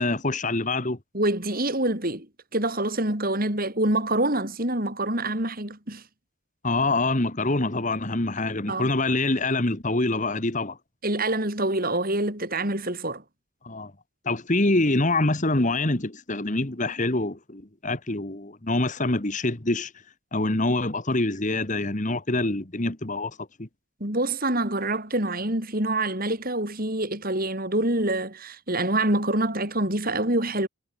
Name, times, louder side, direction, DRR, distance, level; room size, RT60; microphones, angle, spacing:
voice 1, 0.0-1.0 6.6-10.8 13.6-13.9 14.3-19.9 20.3-23.7, left 2 dB, 35° left, 1.6 m, -25 dB
voice 2, 1.1-2.3 2.5-6.0 8.7-8.9 11.0-13.2 24.0-30.7, right 1 dB, 40° right, 5.7 m, -26 dB
head